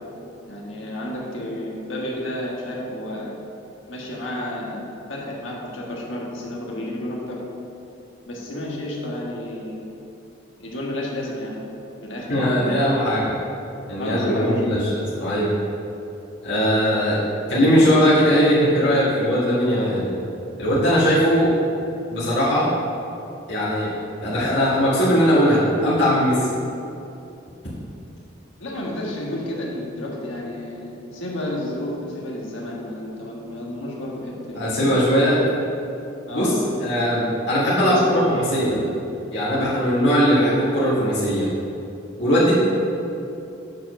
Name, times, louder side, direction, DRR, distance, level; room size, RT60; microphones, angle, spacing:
voice 1, 0.5-3.3 3.9-4.8 5.1-7.4 8.2-9.9 10.6-11.5 12.0-12.8 14.0-14.6 28.6-35.0 36.3-37.0 37.9-39.0, left 1 dB, 85° left, -3 dB, 1.6 m, -31 dB
voice 2, 12.3-13.3 13.9-15.5 16.4-17.2 17.5-20.1 20.6-21.5 22.1-22.7 23.5-23.9 24.2-26.5 34.6-35.4 36.3-36.5 36.8-38.8 39.3-41.5 42.2-42.5, equal, 65° left, -10 dB, 2.0 m, -19 dB
7.5 x 4.8 x 6.4 m, 2.8 s
head